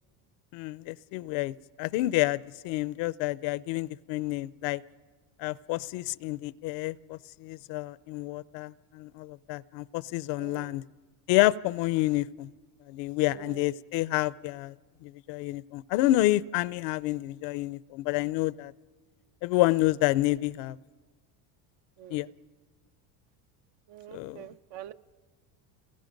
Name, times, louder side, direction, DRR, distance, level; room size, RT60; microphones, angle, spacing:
voice 1, 0.5-4.8 5.4-10.8 11.3-12.5 12.9-14.7 15.0-18.7 19.4-20.8 22.1-22.3 24.1-24.5, left 17 dB, 65° left, 19 dB, 0.7 m, -29 dB
voice 2, 10.4-10.8 13.3-13.7 22.0-22.3 23.9-24.9, right 11 dB, 60° right, 11 dB, 0.9 m, -46 dB
29.0 x 21.5 x 5.2 m, 1.3 s
supercardioid pair, 115°, 48 cm